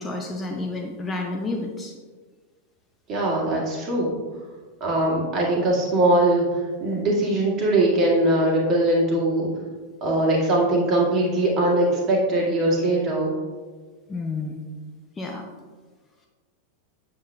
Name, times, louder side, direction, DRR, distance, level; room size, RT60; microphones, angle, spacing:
voice 1, 0.0-1.9 14.1-14.6 15.2-15.4, left 2 dB, 15° left, 2 dB, 0.6 m, -30 dB
voice 2, 3.1-4.2 4.8-9.5 10.0-13.3, right 1 dB, 30° right, -3 dB, 1.9 m, -21 dB
8.2 x 7.2 x 2.3 m, 1.4 s
figure-of-eight pair, 90°, 0 cm